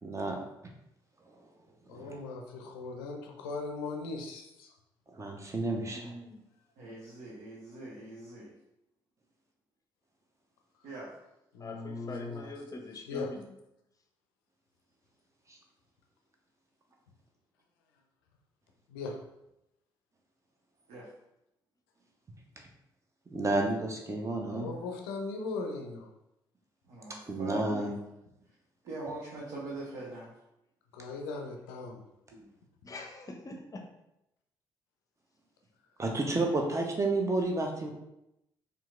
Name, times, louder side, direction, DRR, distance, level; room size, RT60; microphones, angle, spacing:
voice 1, 0.0-0.4 1.9-2.2 5.1-6.1 23.3-24.7 27.3-27.9 36.0-37.9, right 2 dB, 25° right, 1 dB, 0.8 m, -31 dB
voice 2, 1.9-4.7 11.5-12.4 13.1-13.3 18.9-19.2 24.5-26.1 30.9-32.0, left 3 dB, 70° left, 2 dB, 0.5 m, -38 dB
voice 3, 5.9-6.4 11.6-13.5 32.8-33.9, left 2 dB, 30° left, 3 dB, 0.7 m, -44 dB
voice 4, 6.8-8.5 10.8-11.1 20.9-21.1 26.9-28.0 28.8-30.3 32.3-32.4, right 2 dB, 60° right, -6 dB, 0.9 m, -42 dB
4.4 x 2.6 x 2.4 m, 0.85 s
figure-of-eight pair, 40°, 12 cm